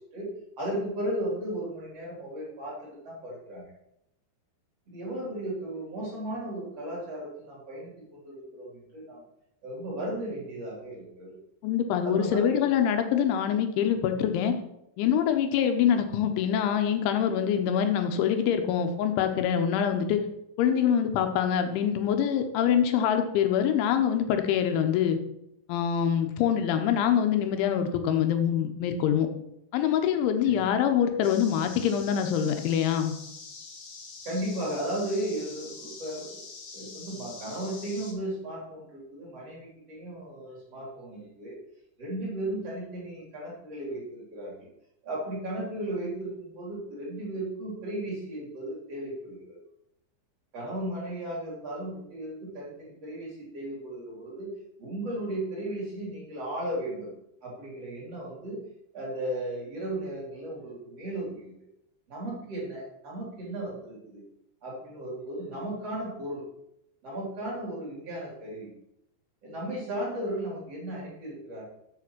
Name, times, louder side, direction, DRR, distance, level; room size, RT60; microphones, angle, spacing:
voice 1, 0.6-2.8 3.0-3.7 4.9-9.2 9.6-11.4 12.0-12.6 30.4-30.7 34.3-36.4 36.7-41.6 42.0-44.7 45.0-49.6 50.5-54.5 54.8-57.1 57.4-58.6 58.9-61.5 62.1-64.2 64.6-66.4 67.0-68.7 69.4-71.6, right 1 dB, 35° right, -5 dB, 4.0 m, -35 dB
voice 2, 11.6-14.6 15.0-20.2 20.6-25.2 25.7-29.3 29.7-33.1, left 9 dB, 85° left, 6 dB, 3.4 m, -25 dB
sound 1, 31.2-38.1, left 4 dB, 55° left, 2.1 m, -45 dB
7.7 x 7.4 x 6.1 m, 0.81 s
omnidirectional pair, 5.3 m